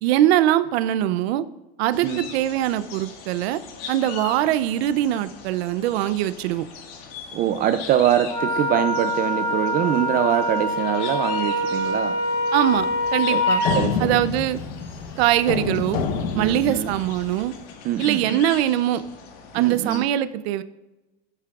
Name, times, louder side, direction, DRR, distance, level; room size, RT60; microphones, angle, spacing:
voice 1, 0.0-1.4 1.8-3.6 3.9-6.6 12.5-12.9 13.1-13.6 14.0-14.6 15.2-16.0 16.3-17.5 18.0-19.0 19.5-20.6, right 12 dB, 85° right, 13 dB, 0.6 m, -22 dB
sound 1, 1.9-20.0, left 6 dB, 60° left, 1.7 m, -41 dB
voice 2, 7.3-12.1 13.3-13.4 13.7-14.2 16.4-16.9 17.8-18.4 19.6-20.1, right 11 dB, 30° right, 9 dB, 0.4 m, -23 dB
Wind instrument woodwind instrument, 8.3-13.8, left 1 dB, 35° left, 2.8 m, -24 dB
sound 2, 12.7-17.5, left 6 dB, 85° left, 1.1 m, -29 dB
11.0 x 10.5 x 2.4 m, 1.0 s
supercardioid pair, 140°, 30 cm